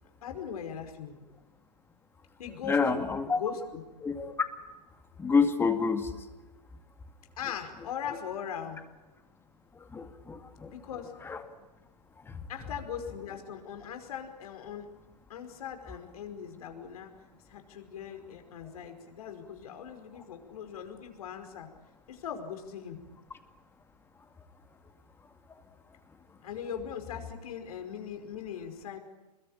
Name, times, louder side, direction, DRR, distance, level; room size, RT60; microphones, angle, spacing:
voice 1, 0.2-1.2 2.4-3.0 3.3-3.8 7.4-8.8 10.7-11.1 12.5-14.9 15.3-17.1 17.5-21.7 22.1-23.0 26.4-29.0, left 8 dB, 60° left, 6 dB, 5.2 m, -40 dB
voice 2, 2.7-3.4 4.0-4.3 5.2-6.1 9.9-10.7 11.2-11.4, left 5 dB, 10° left, 8 dB, 2.2 m, -27 dB
26.5 x 21.5 x 8.8 m, 1.2 s
hypercardioid pair, 125°, 21 cm